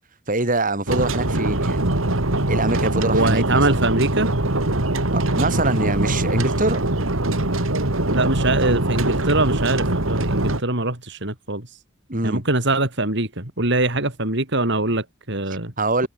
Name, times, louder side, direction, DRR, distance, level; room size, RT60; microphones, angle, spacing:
voice 1, 0.3-1.9 2.5-3.8 5.1-6.8 12.1-12.4 15.8-16.1, right 2 dB, 40° right, 5.9 m, -24 dB
sound 1, 0.9-10.6, right 1 dB, 85° right, 2.9 m, -22 dB
voice 2, 3.1-4.3 8.1-11.7 12.2-15.7, right 2 dB, 60° right, 4.8 m, -22 dB
head